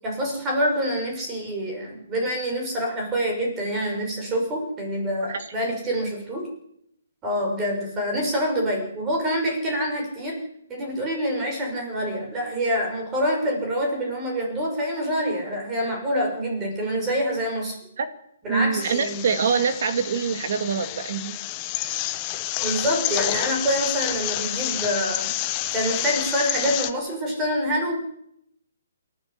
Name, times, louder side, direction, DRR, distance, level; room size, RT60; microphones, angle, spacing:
voice 1, 0.0-6.5 7.2-10.4 10.7-17.8 18.4-19.3 22.6-25.3 25.7-28.0, equal, 10° right, 1 dB, 6.3 m, -26 dB
voice 2, 18.5-21.4, right 6 dB, 45° right, 9 dB, 2.1 m, -24 dB
sound 1, 18.8-26.9, left 15 dB, 20° left, 0.9 m, -29 dB
27.5 x 13.0 x 8.1 m, 0.76 s
hypercardioid pair, 175°, 0 cm